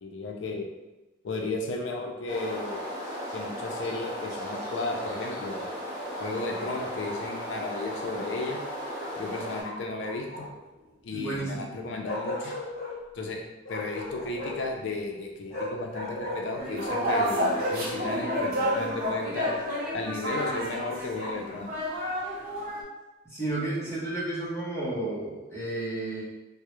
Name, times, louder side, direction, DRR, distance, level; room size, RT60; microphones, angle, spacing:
voice 1, 0.0-0.7 1.2-2.8 3.3-5.6 6.2-8.6 9.2-10.5 11.0-12.5 13.1-13.4 13.7-19.5 19.9-21.7, left 2 dB, 70° left, 1 dB, 0.4 m, -34 dB
sound 1, 2.3-9.6, equal, 20° right, 1.0 m, -36 dB
Bark, 6.5-7.2 9.6-10.7 12.0-12.9 13.6-14.7 15.5-17.2 17.5-19.9 20.5-21.5, left 2 dB, 45° left, 1.0 m, -38 dB
voice 2, 11.1-11.7 23.3-26.2, right 2 dB, 15° left, -8 dB, 0.7 m, -32 dB
sound 2, 16.6-22.8, equal, 50° right, 0.5 m, -30 dB
2.2 x 2.0 x 2.9 m, 1.0 s
head